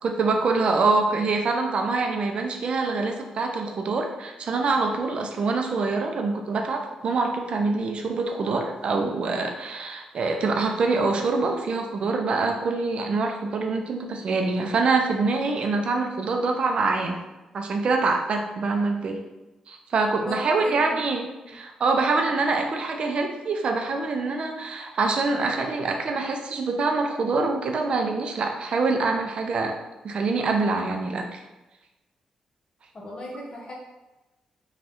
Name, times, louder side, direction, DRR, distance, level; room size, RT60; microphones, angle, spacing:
voice 1, 0.0-17.2 17.5-19.2 19.7-29.7 30.0-31.4, right 3 dB, 60° right, 3 dB, 0.4 m, -25 dB
voice 2, 20.1-21.0 32.9-33.7, equal, 45° left, -3 dB, 0.8 m, -37 dB
2.6 x 2.3 x 3.4 m, 1.1 s
cardioid pair, 80°, 2 cm